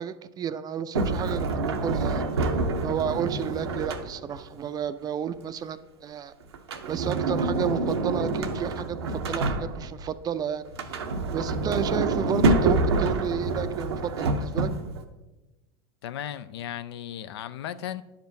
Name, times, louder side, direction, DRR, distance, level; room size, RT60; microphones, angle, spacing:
voice 1, 0.0-2.3 2.8-6.3 6.9-10.7 11.3-14.7, right 8 dB, 30° right, 0.4 m, -31 dB
Sliding door, 0.9-4.5 6.5-10.1 10.7-15.0, right 3 dB, 90° right, 0.6 m, -27 dB
voice 2, 16.0-18.0, left 10 dB, 80° left, 0.4 m, -35 dB
10.5 x 5.1 x 2.7 m
hypercardioid pair, 95°, 13 cm